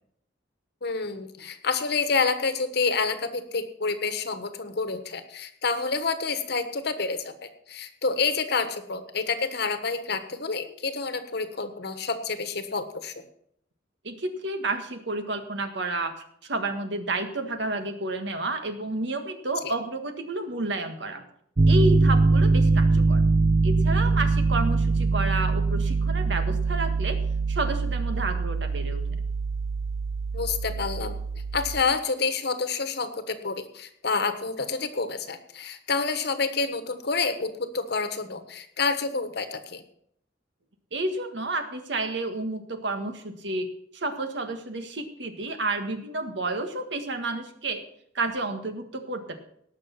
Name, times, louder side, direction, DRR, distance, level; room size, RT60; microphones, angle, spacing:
voice 1, 0.8-13.2 19.6-19.7 30.3-31.1 31.5-39.8, left 4 dB, 60° left, 9 dB, 1.3 m, -28 dB
voice 2, 14.0-16.1 16.4-21.2 21.7-23.2 23.6-27.2 27.5-29.0 40.9-43.7 43.9-47.8 48.1-49.4, right 2 dB, 65° right, 7 dB, 1.7 m, -30 dB
Piano, 21.6-31.8, right 3 dB, 35° right, 0.5 m, -23 dB
18.0 x 6.4 x 5.8 m, 0.68 s
head